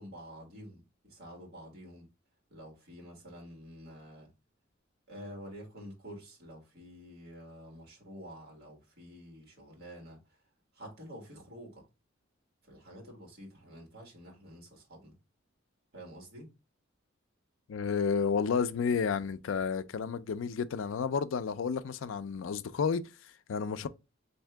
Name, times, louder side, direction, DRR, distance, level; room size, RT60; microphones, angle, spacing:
voice 1, 0.0-2.1 2.5-4.3 5.1-10.4 10.7-11.9 12.6-15.2 15.9-16.5, equal, 50° right, 1.7 m, -49 dB
voice 2, 17.7-23.9, left 6 dB, 70° left, 0.4 m, -31 dB
3.6 x 2.7 x 3.3 m
head